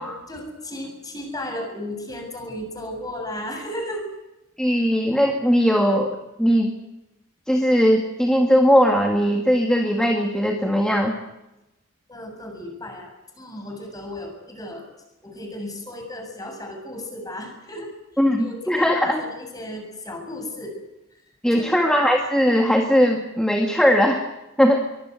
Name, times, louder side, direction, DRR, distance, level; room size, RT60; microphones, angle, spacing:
voice 1, 0.0-4.0 12.1-14.9 15.2-17.9 18.4-20.7 21.5-21.8, left 1 dB, 20° left, 4 dB, 7.3 m, -35 dB
voice 2, 4.6-6.7 7.5-11.2 18.2-19.2 21.4-24.2 24.6-24.8, equal, 5° left, 2 dB, 2.1 m, -19 dB
24.0 x 22.5 x 8.1 m, 0.94 s
head